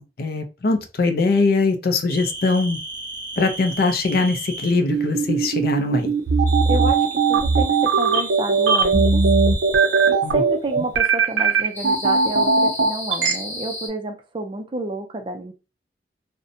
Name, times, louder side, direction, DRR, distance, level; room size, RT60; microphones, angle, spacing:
voice 1, 0.0-2.8 3.4-6.1 10.2-10.4, left 3 dB, 55° left, 0.4 m, -21 dB
sound 1, 2.1-4.8 6.5-10.2 11.7-13.9, right 2 dB, 10° left, 0.8 m, -33 dB
sound 2, 4.9-13.3, right 4 dB, 85° right, 0.5 m, -18 dB
voice 2, 6.7-9.2 10.0-15.5, right 2 dB, 25° right, 0.3 m, -29 dB
2.6 x 2.1 x 2.6 m
head